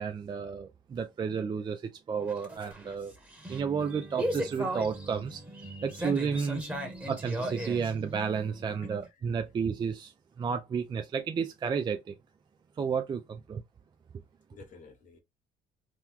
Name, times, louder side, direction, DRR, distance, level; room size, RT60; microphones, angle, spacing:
voice 1, 0.0-1.8 2.1-3.1 3.5-5.4 5.8-6.6 7.1-10.1 10.4-12.1 12.8-13.6, right 6 dB, 25° right, 0.4 m, -32 dB
sound 1, 2.2-9.1, right 1 dB, 10° right, 1.1 m, -37 dB
voice 2, 8.8-9.3 14.5-15.2, left 5 dB, 50° left, 1.2 m, -53 dB
3.0 x 2.2 x 3.6 m
cardioid pair, 110°, 17 cm